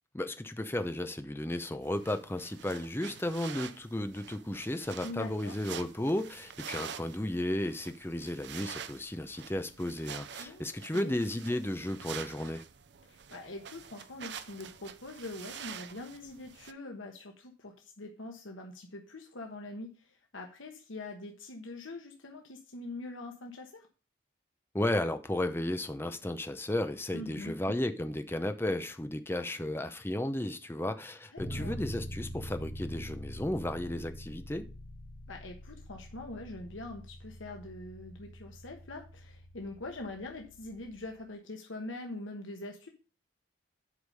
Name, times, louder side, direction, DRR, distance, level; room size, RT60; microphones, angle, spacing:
voice 1, 0.1-12.6 24.7-34.7, left 1 dB, 10° left, 0.6 m, -34 dB
sound 1, 1.8-16.7, right 8 dB, 60° right, 0.6 m, -47 dB
voice 2, 5.0-5.5 10.4-10.7 10.9-11.2 13.0-23.9 27.1-27.6 31.3-31.8 35.3-42.9, left 2 dB, 85° left, 1.2 m, -43 dB
Bass guitar, 31.4-41.2, equal, 30° left, 2.5 m, -44 dB
8.1 x 5.1 x 5.3 m
head